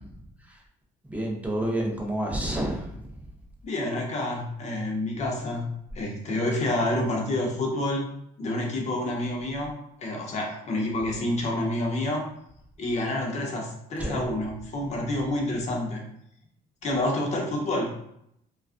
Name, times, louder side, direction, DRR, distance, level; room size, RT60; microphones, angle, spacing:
voice 1, 1.0-3.2 14.0-14.2, right 1 dB, 10° right, -1 dB, 0.6 m, -29 dB
voice 2, 3.6-8.1 8.4-9.7 10.0-12.3 12.8-16.0 16.8-17.9, left 1 dB, 40° left, 0 dB, 0.7 m, -28 dB
2.3 x 2.3 x 2.4 m, 0.74 s
cardioid pair, 110°, 17 cm